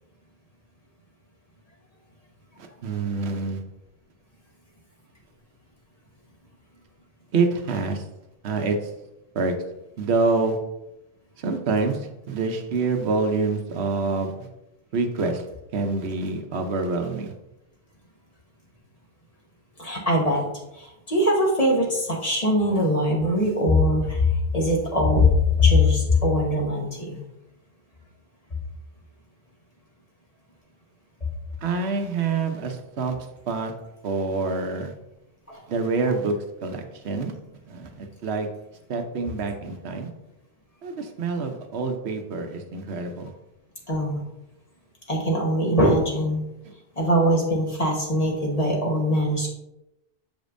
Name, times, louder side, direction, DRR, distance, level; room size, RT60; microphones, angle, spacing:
voice 1, 2.6-3.6 7.3-8.1 8.4-8.9 9.3-9.5 10.0-10.6 11.4-14.3 14.9-15.5 15.7-17.3 31.6-33.2 33.5-33.7 34.0-34.9 35.7-36.3 36.6-37.3 37.7-38.5 38.9-40.1 40.8-43.3, right 4 dB, 85° right, 5 dB, 1.0 m, -26 dB
voice 2, 19.8-20.5 20.8-27.2 35.5-35.6 43.9-44.2 45.1-46.4 47.0-49.5, left 1 dB, 35° left, -1 dB, 1.3 m, -21 dB
7.2 x 5.1 x 2.6 m, 0.89 s
omnidirectional pair, 1.1 m